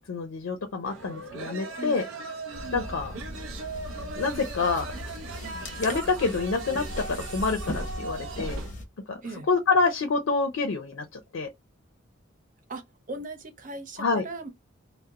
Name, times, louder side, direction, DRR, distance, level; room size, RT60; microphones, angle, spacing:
voice 1, 0.1-2.0 2.7-3.2 4.2-4.9 5.4-5.5 5.8-8.6 9.1-9.2 9.5-11.5 14.0-14.2, left 4 dB, 85° left, 0.4 m, -27 dB
sound 1, 0.8-8.7, right 3 dB, 90° right, 0.5 m, -39 dB
voice 2, 1.8-2.1 5.4-5.6 9.2-9.5 12.7-14.5, right 2 dB, 40° right, 0.5 m, -38 dB
sound 2, 2.5-8.9, left 1 dB, 40° left, 0.7 m, -38 dB
2.4 x 2.0 x 2.7 m
head